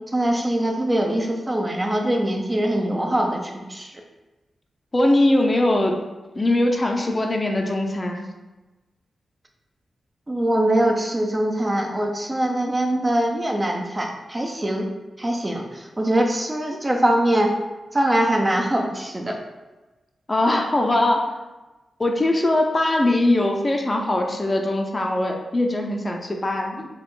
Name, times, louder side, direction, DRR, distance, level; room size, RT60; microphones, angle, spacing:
voice 1, 0.1-3.9 10.3-14.9 15.2-17.5 17.9-19.4, right 1 dB, 25° right, 2 dB, 0.7 m, -22 dB
voice 2, 4.9-6.0 6.3-8.3 20.3-21.3 22.0-26.9, left 1 dB, 30° left, 2 dB, 0.7 m, -21 dB
4.7 x 2.5 x 3.8 m, 1.1 s
cardioid pair, 60°, 0 cm